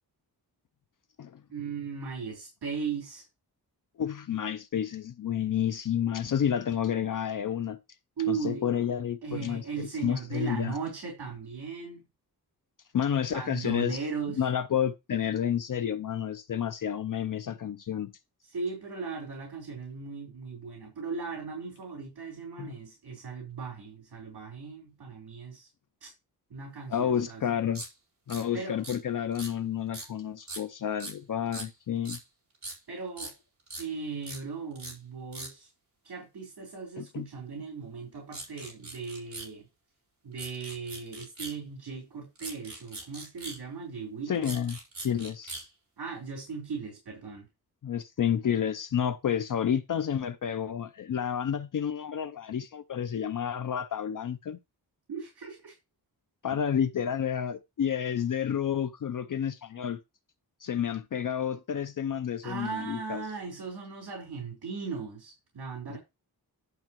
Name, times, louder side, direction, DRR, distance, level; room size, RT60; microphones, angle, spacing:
voice 1, 1.5-3.2 8.2-8.6 9.2-12.0 13.3-14.5 18.4-25.7 26.0-26.1 26.5-27.4 28.5-28.8 32.9-33.3 33.8-35.7 36.0-39.7 40.2-44.4 46.0-47.5 55.1-55.8 56.5-56.6 62.4-66.0, right 5 dB, 75° right, 4.0 m, -37 dB
voice 2, 4.0-7.8 8.3-10.8 12.9-14.0 14.4-18.1 22.6-22.8 26.9-27.8 28.3-32.2 37.0-37.3 44.3-45.7 47.8-54.6 56.4-60.0 60.6-63.2 65.9-66.0, left 8 dB, 55° left, 0.6 m, -30 dB
sound 1, 27.7-27.9 28.3-28.4 28.8-29.0 29.3-29.5 29.9-30.1 30.4-30.6 31.0-31.2 31.5-31.7 32.1-32.2 32.6-32.8 33.2-33.3 33.7-33.8 34.2-34.4 34.8-34.9 35.3-35.5 38.3-39.5 40.4-41.6 42.4-43.6 44.3-45.7, right 2 dB, 45° right, 4.4 m, -40 dB
11.0 x 6.5 x 3.0 m
wide cardioid pair, 165°, 39 cm